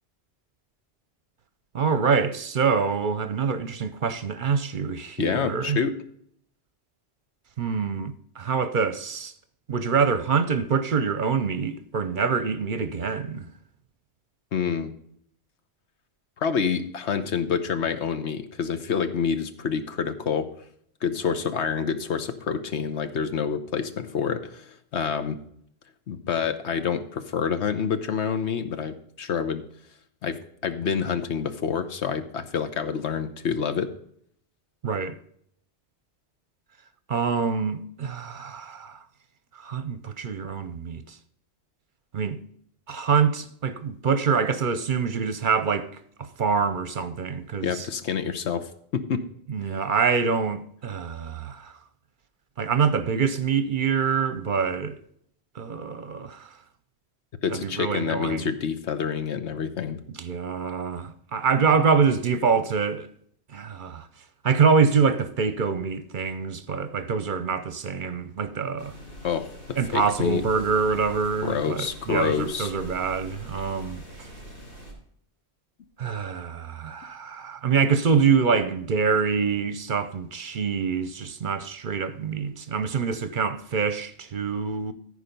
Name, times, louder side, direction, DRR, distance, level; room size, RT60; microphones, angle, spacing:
voice 1, 1.7-5.8 7.6-9.3 9.7-13.5 34.8-35.2 37.1-39.0 39.6-41.2 42.1-42.4 42.9-45.9 46.2-47.9 49.5-51.7 52.6-55.0 55.6-56.5 57.5-58.5 60.2-63.1 63.5-64.1 64.4-68.9 69.8-74.3 76.0-84.9, right 5 dB, 55° right, 0.8 m, -25 dB
voice 2, 5.2-5.9 14.5-14.9 16.4-20.5 21.0-25.4 26.1-29.6 30.2-30.4 30.6-33.9 47.6-49.2 57.4-60.0 69.2-69.5 69.9-70.4 71.4-72.7, left 6 dB, 80° left, 1.2 m, -27 dB
sound 1, 68.8-74.9, equal, 50° left, 3.7 m, -43 dB
14.5 x 4.9 x 5.2 m
omnidirectional pair, 1.1 m